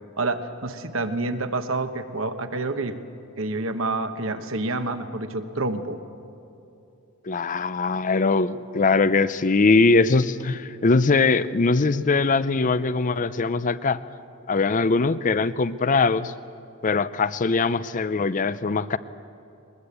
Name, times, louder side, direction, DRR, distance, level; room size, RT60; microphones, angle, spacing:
voice 1, 0.2-3.0 3.4-6.0, right 2 dB, 60° right, 8 dB, 1.2 m, -28 dB
voice 2, 7.3-14.0 14.5-16.3 16.8-19.0, left 3 dB, 35° left, 16 dB, 0.5 m, -21 dB
21.5 x 20.5 x 8.3 m, 2.7 s
head